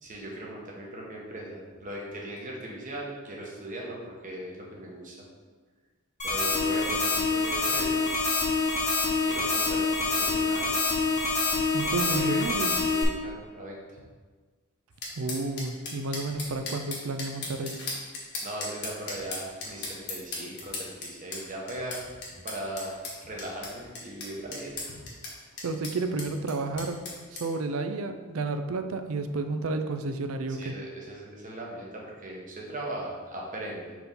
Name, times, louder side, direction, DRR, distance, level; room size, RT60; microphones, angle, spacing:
voice 1, 0.0-5.2 6.2-8.1 9.2-10.8 12.2-12.4 12.9-14.0 18.4-22.0 22.4-25.0 30.5-34.0, right 1 dB, 35° right, -2 dB, 1.1 m, -39 dB
sound 1, 6.2-13.0, left 3 dB, 30° left, 1.1 m, -26 dB
voice 2, 11.7-12.7 15.2-17.8 25.6-27.0 27.3-30.7, right 3 dB, 65° right, 7 dB, 0.5 m, -31 dB
sound 2, 15.0-27.4, left 3 dB, 50° left, 1.4 m, -38 dB
4.7 x 3.8 x 5.4 m, 1.4 s
head